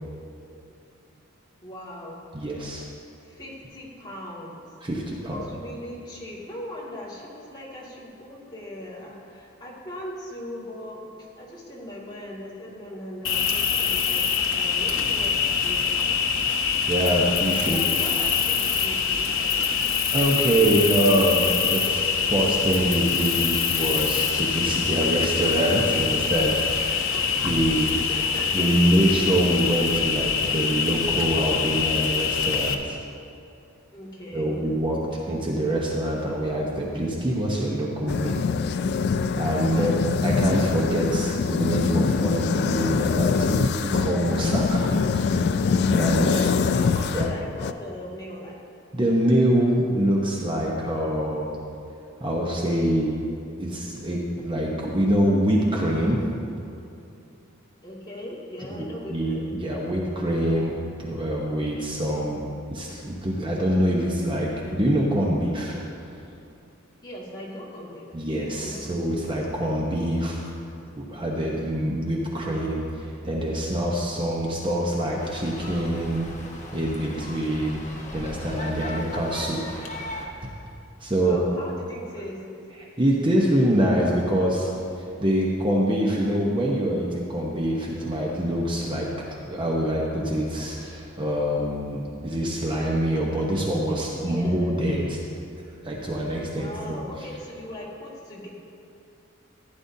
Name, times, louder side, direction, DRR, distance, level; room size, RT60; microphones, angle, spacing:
voice 1, 1.6-2.2 3.2-4.6 5.3-15.3 15.6-16.2 17.6-19.8 27.1-28.7 33.9-35.2 39.7-40.3 46.1-48.6 57.8-59.5 67.0-68.3 68.6-69.2 81.2-82.4 94.2-94.8 96.5-98.5, equal, 20° left, -6 dB, 2.2 m, -39 dB
voice 2, 2.3-2.8 4.8-5.4 16.9-17.8 20.1-27.1 27.4-27.9 28.5-33.0 34.3-38.5 39.4-45.4 45.9-46.5 47.1-47.3 48.9-51.6 52.2-53.1 53.6-56.2 58.7-60.7 61.0-62.4 62.7-65.8 68.1-70.4 71.0-76.3 76.7-77.8 78.1-80.3 81.0-81.4 83.0-84.7 85.0-89.1 89.4-95.2 95.8-97.0, right 1 dB, 25° right, -3 dB, 0.9 m, -25 dB
Cricket, 13.2-32.7, left 6 dB, 70° left, 0.8 m, -24 dB
sound 1, 38.1-47.7, left 5 dB, 55° left, 0.3 m, -24 dB
sound 2, 75.2-80.2, left 1 dB, 40° left, 1.2 m, -38 dB
15.0 x 10.0 x 2.8 m, 2.6 s
head